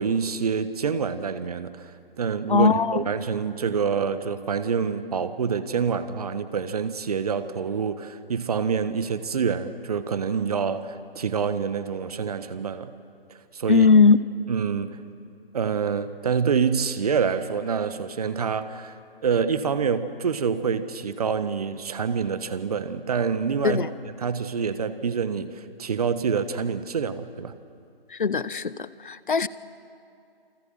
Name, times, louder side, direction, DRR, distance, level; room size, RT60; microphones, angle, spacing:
voice 1, 0.0-1.9 2.2-12.9 13.3-13.9 14.5-15.0 15.5-19.0 19.2-23.8 24.2-27.5, right 6 dB, 40° right, 12 dB, 1.4 m, -26 dB
voice 2, 2.5-3.0 13.7-14.2 23.6-23.9 28.2-28.7 29.0-29.5, left 5 dB, 55° left, 17 dB, 1.0 m, -18 dB
29.0 x 24.5 x 7.6 m, 2.5 s
figure-of-eight pair, 145°, 30 cm